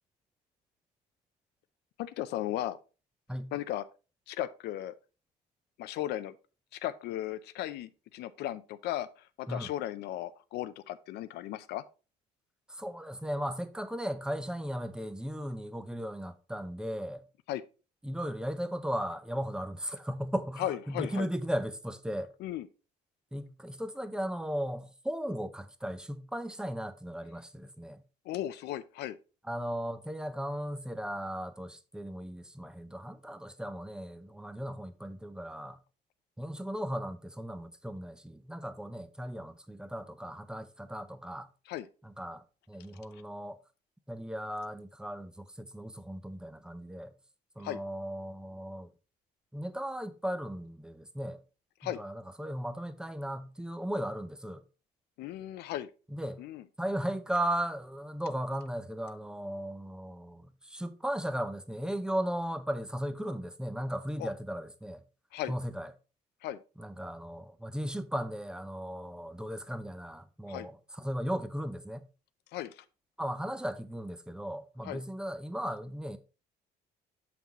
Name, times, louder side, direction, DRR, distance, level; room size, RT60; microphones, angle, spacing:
voice 1, 2.0-2.8 3.5-3.9 4.3-4.9 5.8-6.4 6.7-11.8 17.5-17.6 20.6-21.3 22.4-22.7 28.2-29.2 41.7-41.9 43.1-43.2 47.6-47.8 51.8-52.0 55.2-55.9 56.4-56.6 64.2-64.3 65.3-65.5 66.4-66.6 70.5-70.7 72.5-72.8 74.8-75.0, left 13 dB, 80° left, 0.5 m, -36 dB
voice 2, 12.7-17.2 18.0-22.3 23.3-28.0 29.5-35.8 36.4-41.5 42.0-43.6 44.1-47.1 47.6-48.9 49.5-51.4 51.8-54.6 56.1-56.4 56.8-65.0 65.5-65.9 66.8-72.1 73.2-76.2, equal, 5° right, 0.6 m, -36 dB
7.0 x 5.9 x 2.9 m
cardioid pair, 110°, 17 cm